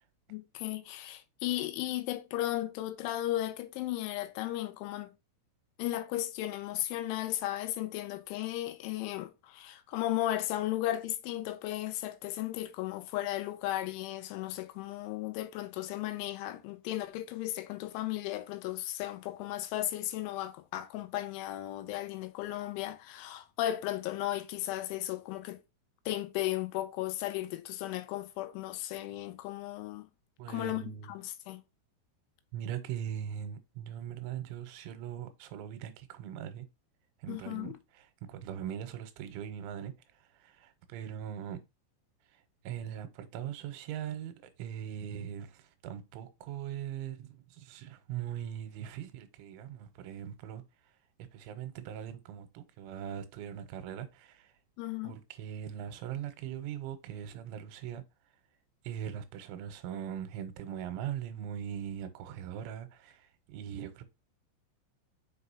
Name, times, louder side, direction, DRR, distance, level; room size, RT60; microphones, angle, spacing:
voice 1, 0.3-5.1 5.8-25.6 26.1-30.1 30.5-30.8 31.1-31.6 37.3-37.8 54.8-55.2, left 14 dB, 80° left, 3.0 m, -35 dB
voice 2, 30.4-31.1 32.5-36.7 37.2-41.6 42.6-50.6 51.3-54.5 55.0-58.0 58.8-64.0, right 9 dB, 90° right, 3.1 m, -40 dB
6.6 x 5.4 x 2.7 m
omnidirectional pair, 5.6 m